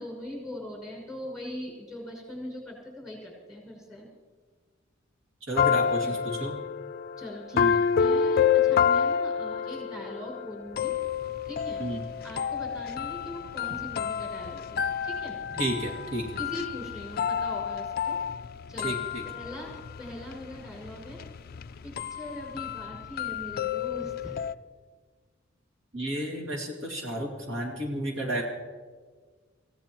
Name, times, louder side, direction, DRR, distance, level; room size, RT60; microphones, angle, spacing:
voice 1, 0.0-4.1 6.0-6.2 7.2-10.9 11.5-11.8 12.2-15.6 16.4-18.2 18.7-19.0 19.2-21.2 21.8-24.4, left 1 dB, 5° right, -2 dB, 6.1 m, -41 dB
voice 2, 5.5-6.6 7.5-7.8 11.8-12.0 15.6-16.3 18.8-19.2 25.9-28.4, right 1 dB, 70° right, 0 dB, 2.3 m, -32 dB
sound 1, 5.6-24.5, left 7 dB, 50° left, 0.4 m, -29 dB
26.0 x 17.0 x 3.0 m, 1.5 s
head